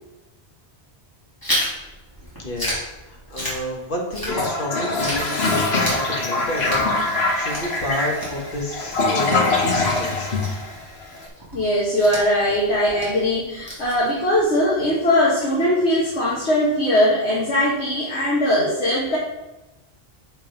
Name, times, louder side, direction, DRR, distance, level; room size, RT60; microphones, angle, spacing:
Chewing mastication, 1.4-4.7 5.0-14.4, equal, 20° left, 2.7 m, -32 dB
voice 1, 2.4-10.3, left 1 dB, 50° left, 0 dB, 1.6 m, -30 dB
Toilet flush, 4.2-11.2, left 3 dB, 70° left, 1.4 m, -23 dB
voice 2, 11.5-19.2, left 1 dB, 85° left, -6 dB, 1.7 m, -20 dB
7.3 x 5.2 x 5.2 m, 1.0 s
omnidirectional pair, 1.1 m